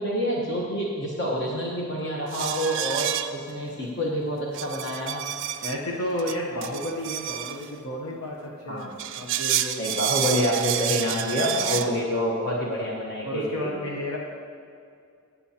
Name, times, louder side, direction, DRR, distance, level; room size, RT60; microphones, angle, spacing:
voice 1, 0.0-5.2 8.7-8.9 9.8-13.7, equal, 50° left, -3 dB, 1.2 m, -27 dB
sound 1, 2.3-3.5 4.5-5.8 6.2-7.7 8.8-11.9, right 12 dB, 55° right, 0.4 m, -29 dB
voice 2, 5.6-9.8 13.2-14.2, left 1 dB, 75° left, -2 dB, 1.0 m, -32 dB
17.0 x 7.2 x 2.9 m, 2.4 s
head